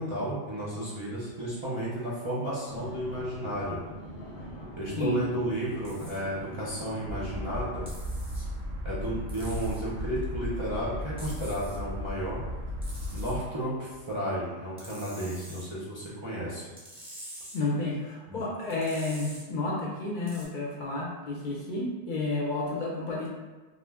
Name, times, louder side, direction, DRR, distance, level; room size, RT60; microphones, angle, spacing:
voice 1, 0.0-3.8 4.8-7.9 8.8-12.4 13.1-16.7 18.3-18.4, right 1 dB, 40° right, -8 dB, 0.4 m, -33 dB
sound 1, 2.7-7.6, equal, 90° left, 1.0 m, -43 dB
sound 2, 5.8-6.2 7.9-8.5 9.3-9.8 11.2-11.8 12.8-13.4 14.8-15.7 16.8-17.6 18.7-19.4 20.3-20.5, right 1 dB, 5° right, 0.8 m, -46 dB
sound 3, 7.1-13.4, left 1 dB, 80° right, 0.8 m, -36 dB
voice 2, 17.5-23.3, left 2 dB, 55° left, -4 dB, 0.7 m, -31 dB
2.4 x 2.0 x 3.3 m, 1.2 s
omnidirectional pair, 1.0 m